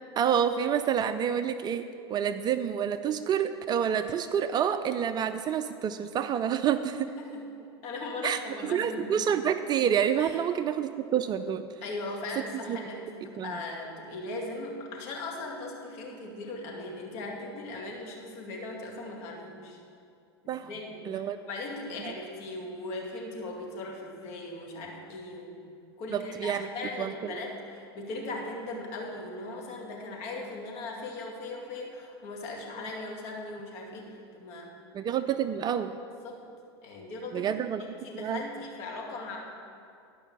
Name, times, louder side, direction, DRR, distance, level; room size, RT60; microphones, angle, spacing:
voice 1, 0.2-7.1 8.2-11.7 12.4-13.0 13.4-13.6 20.5-20.7 21.1-21.4 22.0-22.1 26.1-26.7 27.0-27.4 34.9-35.9 37.3-38.4, right 8 dB, 30° right, 10 dB, 0.4 m, -28 dB
voice 2, 7.0-7.5 7.8-9.2 10.2-10.3 11.8-19.8 20.4-25.6 26.0-34.7 36.2-36.4 36.8-37.5 38.0-39.4, left 2 dB, 50° left, -1 dB, 2.3 m, -39 dB
12.5 x 5.4 x 7.0 m, 2.5 s
hypercardioid pair, 100°, 14 cm